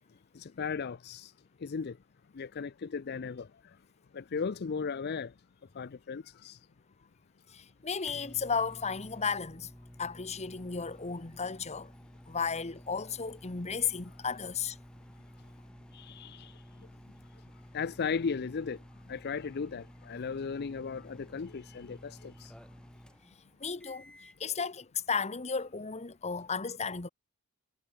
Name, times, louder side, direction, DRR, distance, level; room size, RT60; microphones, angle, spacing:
voice 1, 0.4-1.3 1.6-2.0 2.3-3.5 4.1-5.3 5.8-6.6 15.9-16.5 17.7-18.8 19.1-22.5, left 5 dB, 45° left, 0.5 m, -36 dB
voice 2, 7.5-9.7 10.0-11.9 12.3-14.8 23.6-27.1, left 5 dB, 30° left, 1.1 m, -34 dB
sound 1, 7.5-24.4, equal, 5° left, 1.9 m, -53 dB
head